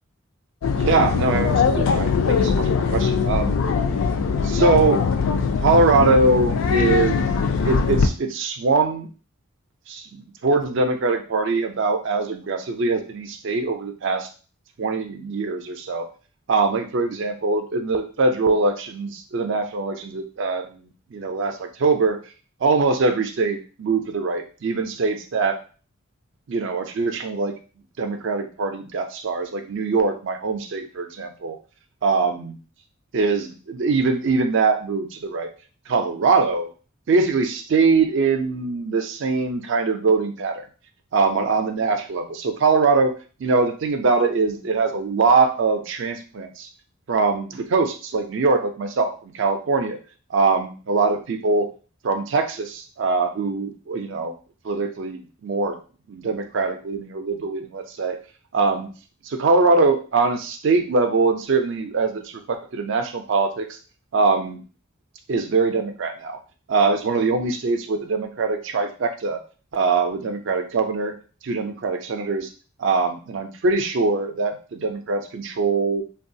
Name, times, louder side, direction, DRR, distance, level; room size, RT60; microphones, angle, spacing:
sound 1, 0.6-8.1, left 5 dB, 70° left, 0.3 m, -21 dB
voice 1, 0.8-3.6 4.4-5.1 5.6-7.3 7.6-9.1 9.9-14.3 14.8-16.1 16.5-20.7 21.1-22.2 22.6-25.6 26.5-27.5 28.0-31.6 32.0-32.6 33.1-35.5 35.9-36.7 37.1-40.6 41.1-43.1 43.4-46.7 47.1-50.0 50.3-51.7 52.0-54.3 54.6-55.8 56.1-58.2 58.5-58.9 59.3-63.7 64.1-64.6 65.3-66.4 66.7-69.4 69.7-71.2 71.4-72.5 72.8-76.0, right 4 dB, 55° right, 6 dB, 0.4 m, -22 dB
3.0 x 2.3 x 2.6 m, 0.36 s
head